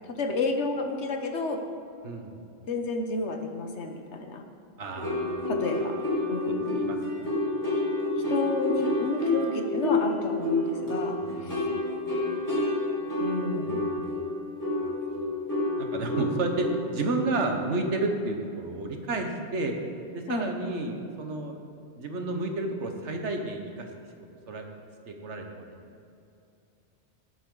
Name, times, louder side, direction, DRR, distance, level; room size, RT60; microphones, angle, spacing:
voice 1, 0.0-1.6 2.7-4.4 5.4-5.9 6.3-6.8 8.3-11.2 11.4-11.7 13.2-13.9 20.3-20.5, left 3 dB, 75° left, 5 dB, 1.3 m, -31 dB
voice 2, 4.8-5.4 5.9-6.0 6.5-7.5 11.2-11.6 13.8-14.2 14.8-15.0 15.8-16.7 16.9-19.7 20.1-21.6 22.0-23.9 24.5-24.6 25.1-25.6, right 2 dB, 80° right, 4 dB, 1.5 m, -31 dB
sound 1, 5.0-17.9, left 2 dB, 15° left, 3.0 m, -29 dB
18.5 x 8.3 x 3.9 m, 2.6 s
omnidirectional pair, 1.2 m